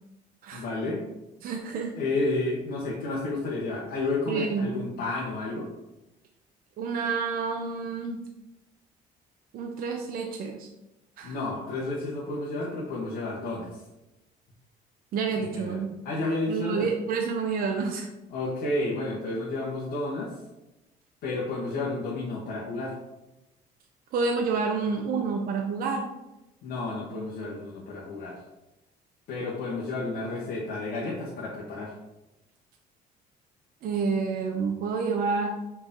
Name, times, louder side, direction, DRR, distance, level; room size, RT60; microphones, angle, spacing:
voice 1, 0.5-1.0 2.0-5.7 11.2-13.7 15.4-16.9 18.3-20.3 21.2-22.9 26.6-28.4 29.3-31.9, left 2 dB, 75° left, -5 dB, 1.4 m, -31 dB
voice 2, 1.4-2.0 4.3-4.7 6.8-8.2 9.5-10.7 11.2-11.4 15.1-16.0 16.5-18.1 24.1-26.1 33.8-35.5, right 5 dB, 60° right, 2 dB, 0.7 m, -29 dB
5.4 x 4.6 x 3.8 m, 0.95 s
cardioid pair, 110°, 17 cm